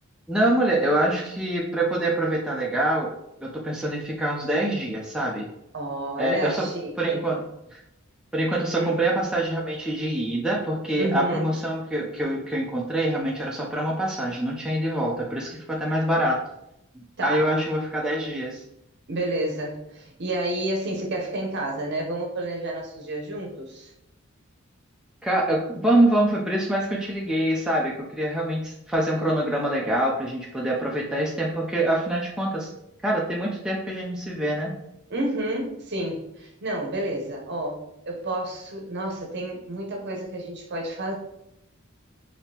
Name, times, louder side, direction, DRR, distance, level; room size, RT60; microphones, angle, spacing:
voice 1, 0.3-3.1 3.4-5.5 6.2-6.7 7.0-7.4 7.7-7.8 8.3-16.4 16.9-18.6 25.2-32.7 33.0-34.7, right 1 dB, 5° right, -3 dB, 0.4 m, -25 dB
voice 2, 5.7-7.2 8.7-9.0 11.0-11.5 17.2-17.5 19.1-23.9 35.1-41.1, right 1 dB, 50° right, 1 dB, 0.7 m, -30 dB
3.5 x 2.8 x 2.8 m, 0.82 s
head